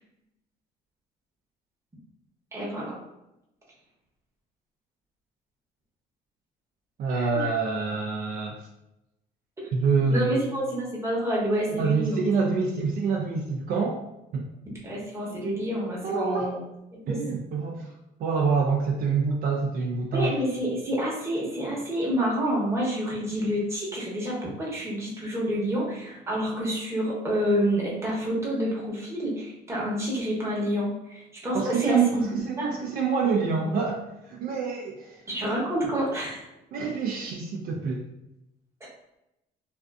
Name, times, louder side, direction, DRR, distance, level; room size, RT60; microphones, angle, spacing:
voice 1, 2.5-3.0 7.1-7.5 9.6-9.7 10.1-12.2 14.8-16.6 16.9-17.2 20.1-32.3 32.6-32.7 35.3-36.5, equal, 15° right, -5 dB, 0.8 m, -28 dB
voice 2, 7.0-8.6 9.7-10.4 11.7-14.0 14.3-14.5 16.0-16.5 17.1-17.9 18.2-20.3 31.5-35.2 36.7-38.1, right 5 dB, 60° right, 0 dB, 0.4 m, -26 dB
2.4 x 2.4 x 2.3 m, 0.91 s
cardioid pair, 110°, 17 cm